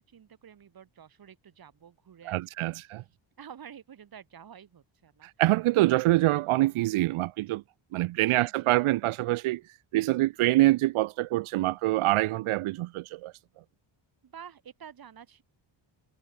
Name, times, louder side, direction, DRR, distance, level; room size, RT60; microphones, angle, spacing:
voice 1, 0.0-2.7 3.4-5.3 8.3-8.9 14.2-15.4, right 8 dB, 45° right, 4.2 m, -49 dB
voice 2, 2.3-3.0 5.2-7.6 7.9-9.6 9.9-13.3, right 17 dB, 85° right, 0.7 m, -25 dB
wide cardioid pair, 165°, 48 cm